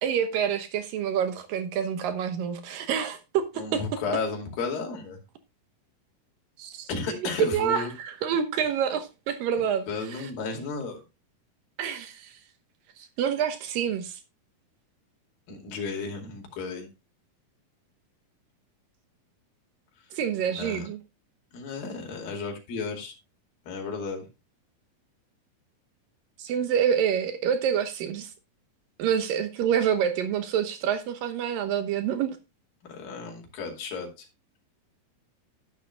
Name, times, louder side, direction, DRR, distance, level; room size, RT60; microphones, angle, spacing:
voice 1, 0.0-4.0 6.6-10.3 11.8-12.4 13.0-14.2 20.1-21.0 26.4-28.3 29.0-32.4, right 8 dB, 75° right, 2.7 m, -27 dB
voice 2, 3.6-5.2 6.9-7.9 9.6-11.0 15.5-16.9 20.5-20.9 21.5-23.1 23.7-24.3 32.9-34.3, left 4 dB, 75° left, 4.2 m, -33 dB
12.5 x 10.5 x 2.2 m
omnidirectional pair, 4.1 m